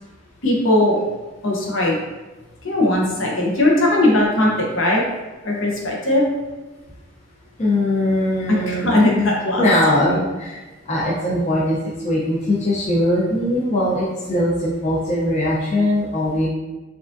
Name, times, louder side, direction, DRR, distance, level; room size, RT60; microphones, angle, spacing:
voice 1, 0.4-1.0 1.4-2.0 2.6-5.0 5.4-6.3 8.5-9.6 10.0-10.2, left 1 dB, 65° left, -3 dB, 0.8 m, -18 dB
voice 2, 7.6-9.3 9.6-10.6 10.9-16.5, left 1 dB, 30° left, -6 dB, 0.5 m, -21 dB
4.7 x 2.4 x 2.5 m, 1.2 s
head